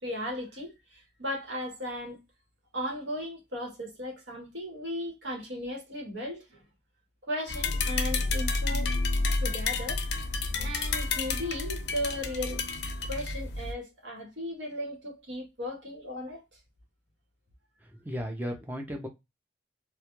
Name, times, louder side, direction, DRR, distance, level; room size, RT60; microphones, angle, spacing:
voice 1, 0.0-2.2 2.7-6.6 7.2-8.9 9.4-10.0 10.6-12.6 13.1-16.6, equal, 85° right, 1.0 m, -36 dB
sound 1, 7.5-13.7, left 3 dB, 65° left, 0.4 m, -30 dB
voice 2, 17.9-19.1, equal, 10° right, 0.4 m, -35 dB
2.2 x 2.1 x 2.8 m
head